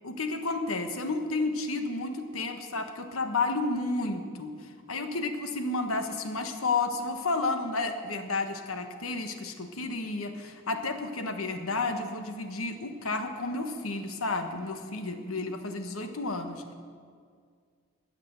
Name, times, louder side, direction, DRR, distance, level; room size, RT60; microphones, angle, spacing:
voice 1, 0.0-4.5 4.9-16.7, left 3 dB, 85° left, 7 dB, 1.3 m, -31 dB
19.5 x 6.7 x 7.9 m, 2.1 s
head